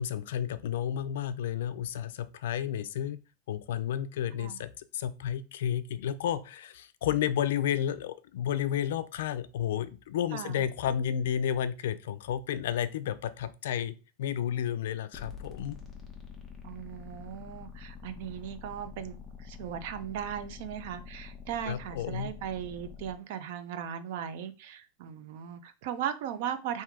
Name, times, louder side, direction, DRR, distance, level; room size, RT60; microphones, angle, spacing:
voice 1, 0.0-3.2 3.5-15.8 21.7-22.3, left 10 dB, 75° left, 13 dB, 0.4 m, -32 dB
voice 2, 10.3-10.6 16.6-26.8, right 9 dB, 50° right, 11 dB, 0.6 m, -38 dB
sound 1, 15.1-23.1, left 6 dB, 10° left, 0.7 m, -46 dB
3.7 x 2.7 x 4.6 m, 0.32 s
supercardioid pair, 170°, 0 cm